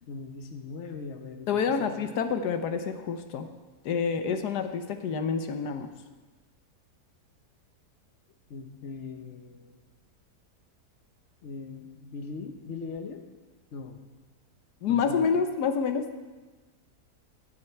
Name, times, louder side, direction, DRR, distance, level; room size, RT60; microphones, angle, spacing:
voice 1, 0.0-1.9 8.5-9.8 11.4-13.2 13.7-14.0 14.9-15.3, left 4 dB, 50° left, 7 dB, 1.2 m, -40 dB
voice 2, 1.5-3.5 3.8-5.9 14.8-16.1, left 6 dB, 85° left, 7 dB, 1.5 m, -28 dB
17.5 x 9.7 x 4.5 m, 1.3 s
omnidirectional pair, 1.7 m